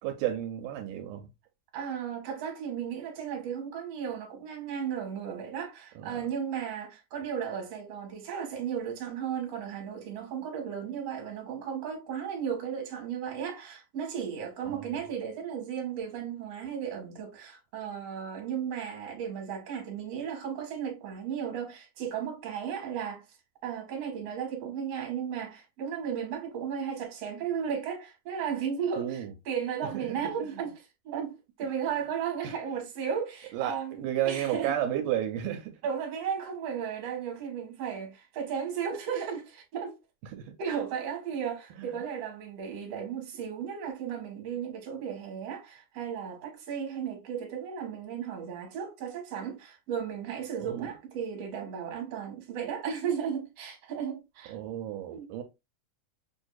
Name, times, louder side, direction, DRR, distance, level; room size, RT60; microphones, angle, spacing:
voice 1, 0.0-1.3 6.0-6.2 14.7-14.9 29.0-29.3 29.9-30.1 32.4-32.6 33.5-35.8 40.3-40.6 41.8-42.0 50.6-50.9 54.5-55.4, right 11 dB, 85° right, 2.2 m, -32 dB
voice 2, 1.7-23.2 23.6-34.7 35.8-40.0 40.6-54.6 55.0-55.3, right 7 dB, 55° right, 2.1 m, -35 dB
6.8 x 2.6 x 2.3 m
omnidirectional pair, 3.6 m